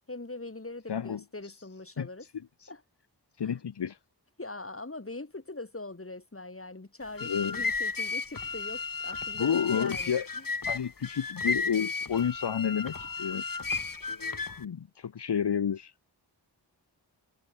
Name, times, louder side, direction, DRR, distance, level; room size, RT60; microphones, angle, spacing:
voice 1, 0.1-2.3 2.7-2.8 3.4-3.6 4.4-10.5, left 2 dB, 30° left, 5.2 m, -42 dB
voice 2, 0.9-1.2 2.0-2.1 3.4-4.0 7.2-7.6 9.4-10.2 10.7-13.4 14.6-15.9, left 8 dB, 75° left, 1.0 m, -30 dB
sound 1, 7.0-14.6, left 4 dB, 50° left, 2.7 m, -34 dB
wide cardioid pair, 80°, 41 cm